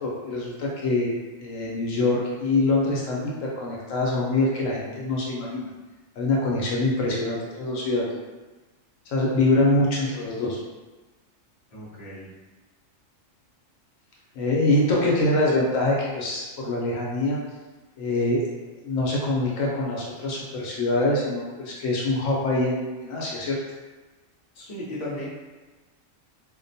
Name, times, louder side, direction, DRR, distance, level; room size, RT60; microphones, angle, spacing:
voice 1, 0.0-1.1 1.4-5.7 6.2-8.1 9.1-10.6 14.3-17.4 18.0-18.5 18.8-23.6, left 2 dB, 75° left, -4 dB, 0.9 m, -24 dB
voice 2, 11.7-12.3 24.5-25.3, left 1 dB, 40° left, -8 dB, 0.7 m, -35 dB
2.4 x 2.1 x 2.6 m, 1.2 s
omnidirectional pair, 1.4 m